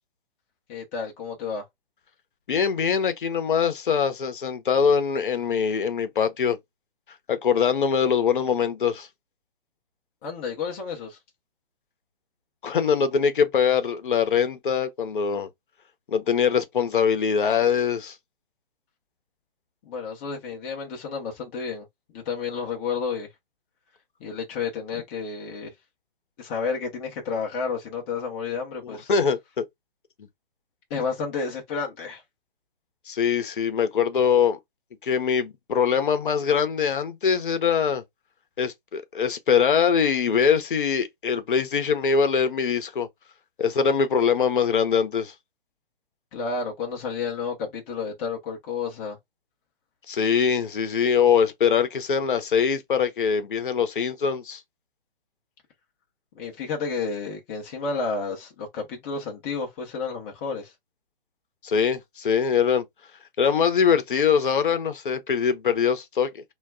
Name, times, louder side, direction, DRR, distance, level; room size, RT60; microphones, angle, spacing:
voice 1, 0.7-1.7 10.2-11.2 19.8-21.9 22.1-23.3 24.2-25.8 26.4-29.1 30.9-32.2 46.3-49.2 56.3-60.7, left 5 dB, 15° left, 0.4 m, -31 dB
voice 2, 2.5-6.6 7.3-9.1 12.6-15.5 16.1-18.1 29.1-29.6 33.1-34.6 35.0-38.0 38.6-43.1 43.6-45.3 50.1-54.6 61.6-62.8 63.4-66.4, left 7 dB, 60° left, 0.7 m, -23 dB
2.2 x 2.1 x 3.4 m
figure-of-eight pair, 130°, 29 cm